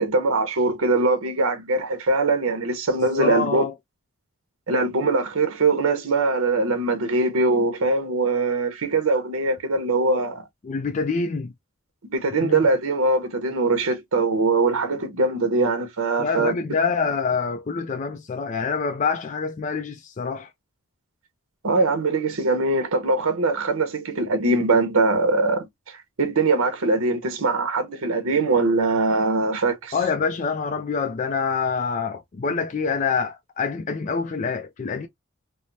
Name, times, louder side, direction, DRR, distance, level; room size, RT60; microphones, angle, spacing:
voice 1, 0.0-3.6 4.7-10.4 12.1-16.5 21.6-25.7 26.2-29.9, right 3 dB, 85° right, 0.8 m, -22 dB
voice 2, 3.2-3.7 10.6-11.5 12.4-12.6 16.2-20.5 29.9-35.1, left 5 dB, 35° left, 0.3 m, -26 dB
3.2 x 2.0 x 2.6 m
head